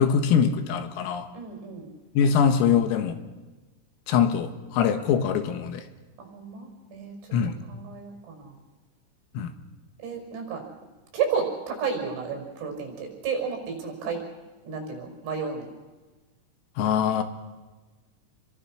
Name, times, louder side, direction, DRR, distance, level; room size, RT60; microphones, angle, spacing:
voice 1, 0.0-1.3 2.2-3.2 4.1-5.8 7.3-7.6 9.4-9.5 16.8-17.2, left 7 dB, 80° left, 8 dB, 4.2 m, -23 dB
voice 2, 1.3-1.9 6.2-8.6 10.0-10.6 11.1-14.2 14.6-15.7, right 6 dB, 65° right, 2 dB, 7.9 m, -32 dB
29.0 x 23.0 x 6.4 m, 1.2 s
omnidirectional pair, 6.0 m